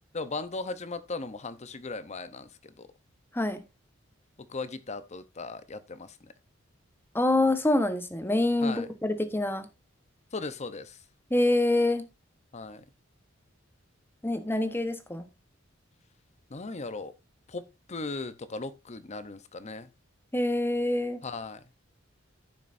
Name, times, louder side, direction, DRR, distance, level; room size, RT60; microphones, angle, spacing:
voice 1, 0.1-2.9 4.4-6.3 8.6-8.9 10.3-11.0 12.5-12.8 16.5-17.1 17.5-19.9 21.2-21.6, left 3 dB, 35° left, 0.8 m, -38 dB
voice 2, 7.1-9.7 11.3-12.0 14.2-15.2 20.3-21.2, left 1 dB, 10° left, 1.1 m, -26 dB
15.0 x 6.0 x 2.6 m
head